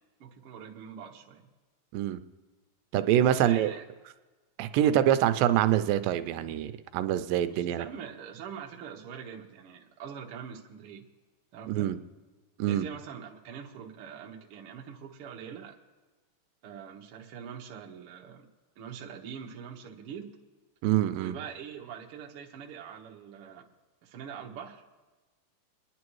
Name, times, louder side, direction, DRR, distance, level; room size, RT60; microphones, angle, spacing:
voice 1, 0.2-1.5 3.3-3.8 4.8-5.0 7.5-11.0 11.5-11.9 12.7-15.8 16.6-18.5 18.8-20.3 21.1-23.7 24.0-24.8, right 7 dB, 60° right, 0 dB, 1.5 m, -43 dB
voice 2, 2.9-3.7 4.6-7.9 11.7-12.0 12.6-12.9 20.8-21.4, right 11 dB, 85° right, 11 dB, 2.3 m, -25 dB
24.0 x 10.5 x 3.1 m, 1.3 s
omnidirectional pair, 3.9 m